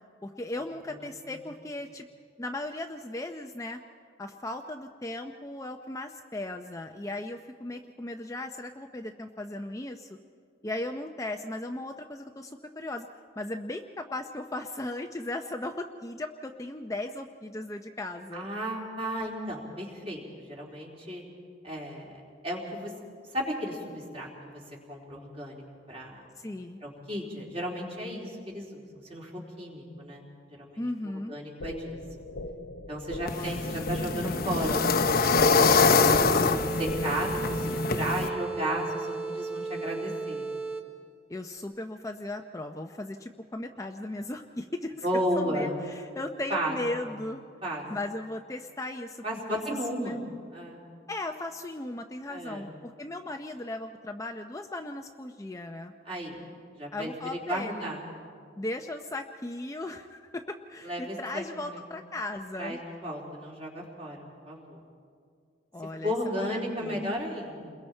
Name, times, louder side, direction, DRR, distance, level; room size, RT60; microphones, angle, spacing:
voice 1, 0.2-2.1 2.4-3.8 4.2-10.2 10.6-13.1 13.4-18.5 26.4-26.8 30.8-31.3 33.2-34.0 41.3-45.1 45.3-47.4 47.9-49.6 50.0-50.2 51.1-55.9 56.9-57.8 58.6-62.8 65.7-67.0, left 2 dB, 15° left, 4 dB, 0.6 m, -37 dB
voice 2, 18.3-20.2 20.5-21.2 21.6-22.9 23.3-24.6 24.9-25.6 25.9-26.2 26.8-28.8 29.1-30.3 30.6-30.8 31.3-32.0 32.9-35.4 36.7-40.5 45.0-45.7 46.5-46.8 47.6-47.9 49.2-50.2 50.5-50.8 52.3-52.6 56.1-56.4 56.8-58.1 60.8-61.8 62.6-64.2 64.5-64.8 66.0-67.7, equal, 30° right, -2 dB, 3.7 m, -34 dB
sound 1, 31.6-37.6, left 2 dB, 85° left, 0.8 m, -41 dB
sound 2, 33.3-38.3, left 4 dB, 50° left, 0.8 m, -24 dB
sound 3, 35.1-41.1, right 3 dB, 5° right, 1.3 m, -35 dB
29.5 x 21.5 x 4.4 m, 2.2 s
head